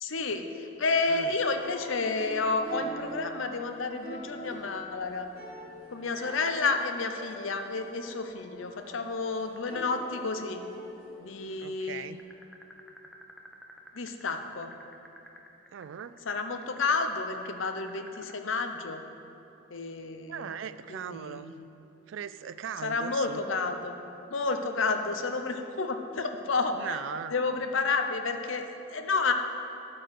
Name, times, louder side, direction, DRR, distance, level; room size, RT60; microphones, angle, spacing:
voice 1, 0.0-5.3 5.9-10.6 11.2-12.1 13.9-14.7 16.3-19.0 19.7-20.6 20.9-21.7 22.8-24.0 24.3-27.0 27.3-29.3, left 4 dB, 75° left, 6 dB, 0.7 m, -30 dB
sound 1, 1.4-12.2, equal, 45° right, 2.4 m, -45 dB
voice 2, 11.6-12.2 15.7-16.2 20.3-21.5 22.1-23.4 26.7-27.3, right 8 dB, 70° right, 14 dB, 0.3 m, -39 dB
sound 2, 12.2-18.4, equal, ahead, 0.6 m, -49 dB
13.0 x 4.6 x 6.3 m, 2.9 s
head